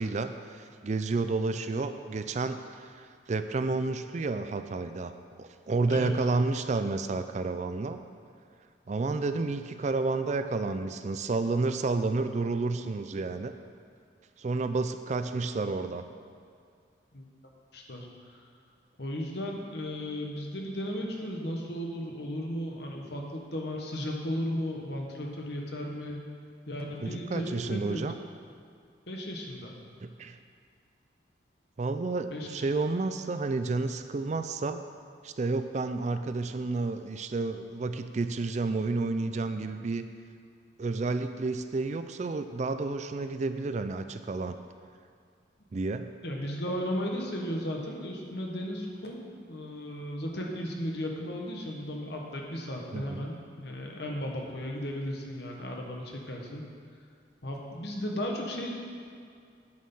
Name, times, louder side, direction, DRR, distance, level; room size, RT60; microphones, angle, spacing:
voice 1, 0.0-5.1 5.4-8.0 8.9-13.5 14.4-16.0 27.0-28.2 30.0-30.4 31.8-34.8 35.2-40.0 40.8-44.6 45.7-46.1 52.9-53.2, right 3 dB, 40° right, 9 dB, 0.4 m, -30 dB
voice 2, 17.7-18.1 18.4-18.5 19.0-26.2 26.7-28.0 29.1-29.7 32.3-32.7 46.2-49.2 49.5-56.6 57.4-58.7, equal, 60° left, 0 dB, 1.4 m, -35 dB
9.5 x 6.5 x 5.5 m, 2.3 s
head